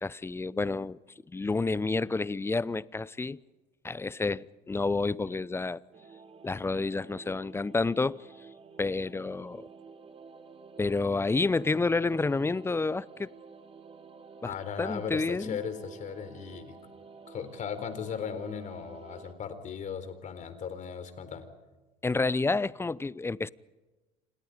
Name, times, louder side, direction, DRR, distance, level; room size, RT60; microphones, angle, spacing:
voice 1, 0.0-1.0 1.3-3.4 3.8-5.8 6.4-8.2 8.8-9.7 10.8-13.3 14.4-15.6 22.0-23.5, left 3 dB, 15° left, 0.7 m, -29 dB
sound 1, 5.9-19.3, right 5 dB, 35° right, 2.8 m, -50 dB
voice 2, 14.4-16.8 17.3-21.5, left 7 dB, 45° left, 4.2 m, -37 dB
29.0 x 26.5 x 5.1 m
hypercardioid pair, 80°, 18 cm